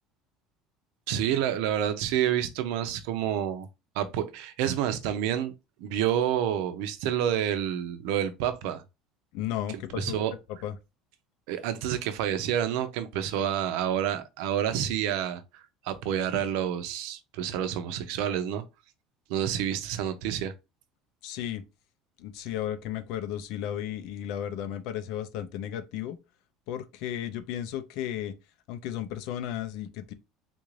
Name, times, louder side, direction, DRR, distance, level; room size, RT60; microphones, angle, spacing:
voice 1, 1.1-3.7 3.9-5.5 5.8-8.8 10.0-10.3 11.5-18.6 19.3-20.5, right 10 dB, 75° right, 0.6 m, -28 dB
voice 2, 9.3-10.2 10.5-10.8 21.2-21.6 22.2-26.2 26.7-28.3 28.7-30.1, left 11 dB, 65° left, 0.5 m, -34 dB
3.8 x 2.5 x 3.1 m
cardioid pair, 150°, 0 cm